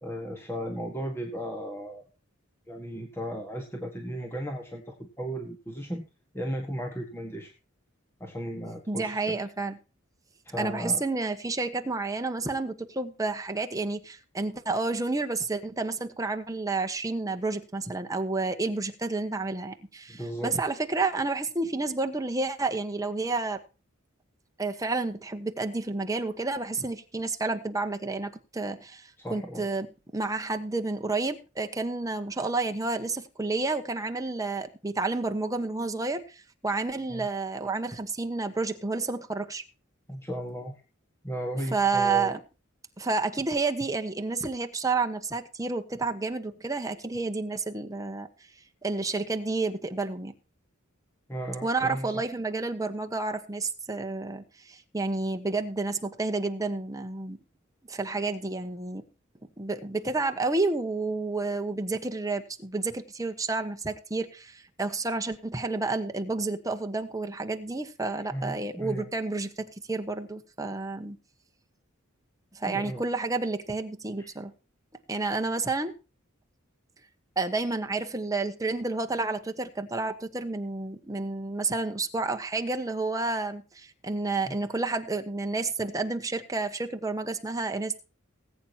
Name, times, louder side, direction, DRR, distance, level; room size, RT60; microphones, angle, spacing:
voice 1, 0.0-2.0 2.7-6.1 6.3-7.5 8.2-9.4 10.4-11.0 20.1-20.5 29.2-29.7 37.1-37.3 40.1-40.8 41.2-42.4 51.3-52.2 68.3-69.1 72.7-73.0 74.2-74.3 84.4-84.6, equal, 10° left, 1.6 m, -35 dB
voice 2, 8.9-9.8 10.6-23.6 24.6-29.9 30.1-39.6 41.7-42.4 43.0-48.3 48.8-50.3 51.6-57.4 57.9-59.0 59.6-71.2 72.5-74.5 75.1-75.9 77.4-88.0, right 3 dB, 15° right, 1.2 m, -30 dB
19.5 x 8.7 x 2.9 m
head